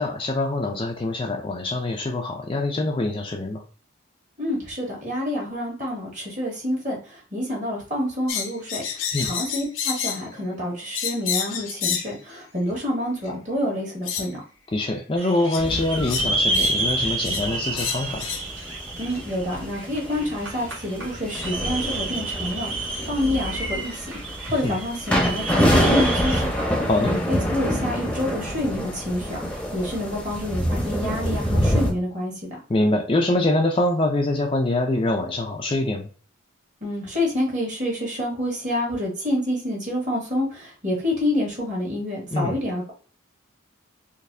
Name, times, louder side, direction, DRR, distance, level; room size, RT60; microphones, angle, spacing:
voice 1, 0.0-3.6 9.1-9.3 14.7-18.3 24.6-24.8 26.9-27.1 32.7-36.0 42.3-42.6, left 2 dB, 25° left, 2 dB, 0.4 m, -24 dB
voice 2, 4.4-8.8 9.2-14.4 19.0-26.6 27.0-32.3 36.8-42.9, left 1 dB, 35° right, -3 dB, 1.7 m, -28 dB
sun conure, 8.3-10.3 10.9-12.1 13.2-13.3 14.1-14.3 15.5-15.6 16.0-16.8 17.2-17.5 17.8-18.5, left 7 dB, 75° left, 0.6 m, -29 dB
sound 1, 15.2-26.4, right 2 dB, 60° right, 1.7 m, -30 dB
sound 2, 15.6-31.9, equal, 5° left, 0.8 m, -27 dB
4.0 x 2.6 x 2.7 m, 0.39 s
head